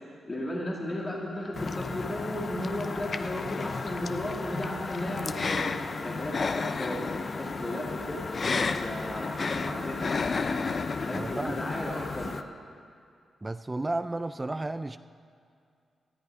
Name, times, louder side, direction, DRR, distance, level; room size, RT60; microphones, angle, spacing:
voice 1, 0.3-5.7 6.0-8.5 8.8-10.0 11.1-12.3, left 1 dB, 30° left, -3 dB, 2.5 m, -35 dB
sound 1, 0.8-12.4, left 2 dB, 65° left, 2.8 m, -47 dB
sound 2, 1.6-12.4, left 4 dB, 45° left, 0.6 m, -32 dB
voice 2, 11.1-11.6 13.4-15.0, right 2 dB, 20° right, 12 dB, 0.4 m, -32 dB
17.0 x 13.5 x 4.9 m, 2.3 s
cardioid pair, 85°, 0 cm